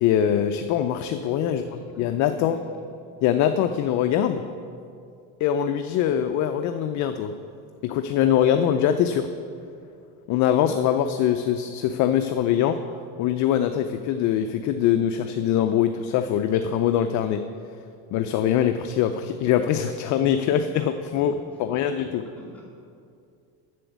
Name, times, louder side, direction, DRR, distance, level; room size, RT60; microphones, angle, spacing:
voice 1, 0.0-1.6 2.0-2.6 3.2-4.4 5.4-7.3 7.8-9.3 10.3-12.8 13.2-17.4 18.1-21.3 21.6-22.2, left 10 dB, 45° left, 8 dB, 0.5 m, -23 dB
voice 2, 1.4-2.0 2.5-2.6 21.1-21.9 22.4-22.6, left 2 dB, 5° left, -8 dB, 2.4 m, -44 dB
7.6 x 7.0 x 8.1 m, 2.4 s
supercardioid pair, 125°, 42 cm